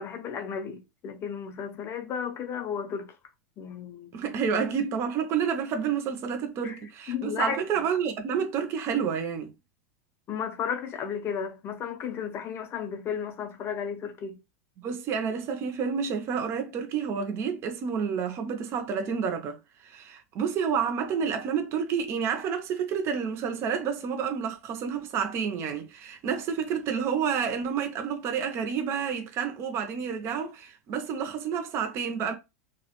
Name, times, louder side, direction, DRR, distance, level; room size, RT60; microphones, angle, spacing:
voice 1, 0.0-3.1 3.6-4.1 6.6-6.8 7.1-7.6 10.3-14.4, left 7 dB, 30° left, 0.4 m, -33 dB
voice 2, 4.1-9.5 14.8-19.6 19.8-32.3, right 7 dB, 30° right, 0.4 m, -29 dB
2.3 x 2.0 x 2.8 m
supercardioid pair, 145°, 9 cm